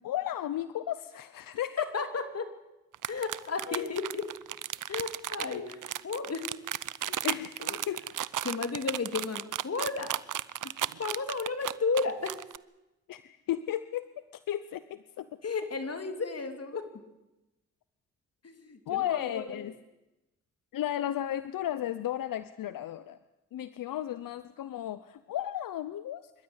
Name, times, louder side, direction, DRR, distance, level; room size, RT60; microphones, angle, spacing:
voice 1, 0.0-1.9 3.7-4.1 5.5-5.7 7.1-8.0 13.1-14.1 14.5-15.3 18.9-19.7 20.7-23.2 23.5-26.3, left 12 dB, 85° left, 13 dB, 0.8 m, -34 dB
voice 2, 1.9-2.5 3.1-4.2 4.9-5.8 6.0-6.5 7.6-7.8 8.4-10.1 11.0-12.3 15.4-16.9 18.4-19.4, left 4 dB, 50° left, 7 dB, 3.4 m, -33 dB
sound 1, 2.9-12.6, right 11 dB, 70° right, 0.8 m, -34 dB
26.0 x 13.0 x 10.0 m, 0.99 s
cardioid pair, 65°, 33 cm